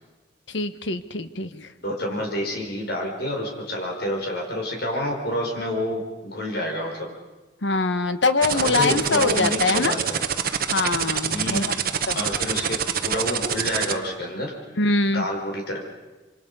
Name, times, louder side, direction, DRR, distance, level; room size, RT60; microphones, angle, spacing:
voice 1, 0.5-1.7 7.6-9.9 10.7-11.7 12.1-12.2 14.8-15.2, left 3 dB, 75° left, 11 dB, 1.2 m, -23 dB
voice 2, 1.8-7.1 8.5-10.2 11.3-11.8 12.1-14.5 15.1-15.8, left 1 dB, 60° left, 1 dB, 5.2 m, -28 dB
sound 1, 8.4-13.9, right 8 dB, 55° right, 1.2 m, -25 dB
26.0 x 25.5 x 5.5 m, 1.2 s
head